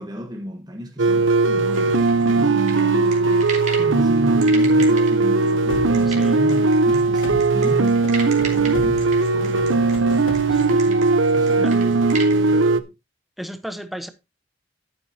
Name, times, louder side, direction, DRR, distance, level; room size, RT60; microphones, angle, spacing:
voice 1, 0.0-8.0 8.3-12.9, equal, 20° right, 1.3 m, -34 dB
sound 1, 1.0-12.8, right 3 dB, 85° right, 0.8 m, -18 dB
sound 2, 1.7-3.9 4.4-12.4, right 5 dB, 40° right, 2.8 m, -34 dB
sound 3, 5.6-10.8, left 3 dB, 85° left, 0.7 m, -35 dB
voice 2, 6.1-6.4 10.5-10.9 11.6-11.7 13.4-14.1, equal, ahead, 1.0 m, -34 dB
11.0 x 9.4 x 2.8 m
head